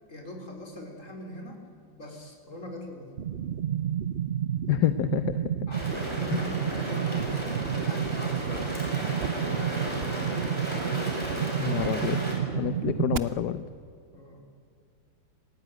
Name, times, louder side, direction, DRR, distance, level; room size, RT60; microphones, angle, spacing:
voice 1, 0.1-1.6 2.0-3.2 5.7-10.8 14.1-14.4, left 1 dB, 40° left, 2 dB, 4.5 m, -43 dB
sound 1, 3.2-13.2, right 9 dB, 60° right, 0.6 m, -30 dB
voice 2, 4.7-5.6 6.3-6.4 11.6-12.2 12.5-13.6, left 12 dB, 65° left, 12 dB, 1.2 m, -28 dB
sound 2, 5.7-12.3, equal, 15° right, 5.6 m, -34 dB
27.0 x 18.0 x 9.2 m, 2.4 s
omnidirectional pair, 2.1 m